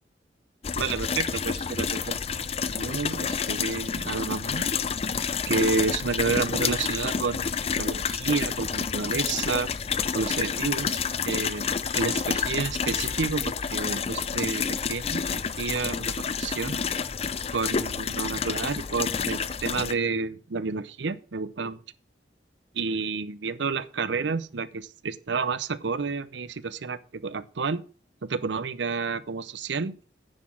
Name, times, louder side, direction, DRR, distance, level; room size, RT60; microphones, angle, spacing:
sound 1, 0.6-19.9, left 6 dB, 35° left, 0.5 m, -29 dB
voice 1, 0.8-4.7 5.5-9.7 10.1-16.8 17.5-21.8 22.7-27.8 28.2-29.9, right 4 dB, 80° right, 0.7 m, -30 dB
Wind instrument woodwind instrument, 11.8-15.6, left 1 dB, ahead, 3.1 m, -57 dB
9.8 x 6.0 x 6.2 m
head